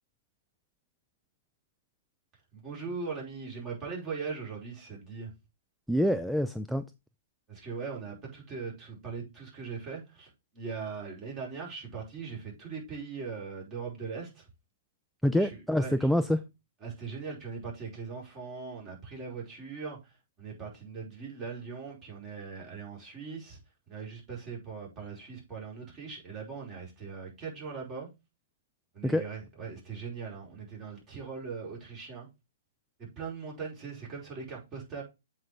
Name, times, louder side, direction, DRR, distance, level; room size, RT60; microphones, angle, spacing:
voice 1, 2.5-5.3 7.5-14.4 15.4-16.1 16.8-20.1 20.4-23.6 23.9-28.1 28.9-32.3 33.0-35.0, right 5 dB, 25° right, 5.0 m, -40 dB
voice 2, 5.9-6.8 15.2-16.4 29.0-29.2, equal, ahead, 0.4 m, -26 dB
7.8 x 5.2 x 3.7 m
hypercardioid pair, 130°, 0 cm